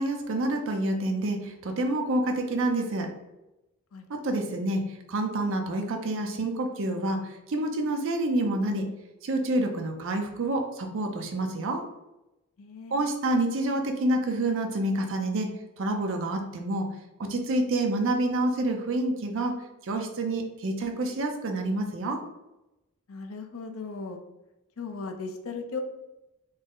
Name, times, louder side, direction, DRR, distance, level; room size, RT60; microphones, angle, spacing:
voice 1, 0.0-3.1 4.1-8.9 9.2-11.8 12.9-15.5 15.8-16.9 17.2-19.5 19.8-22.2, right 1 dB, 60° right, 3 dB, 0.5 m, -28 dB
voice 2, 12.6-13.0 23.1-24.2 24.8-25.8, left 4 dB, 65° left, 5 dB, 0.5 m, -37 dB
3.9 x 2.0 x 3.7 m, 0.96 s
head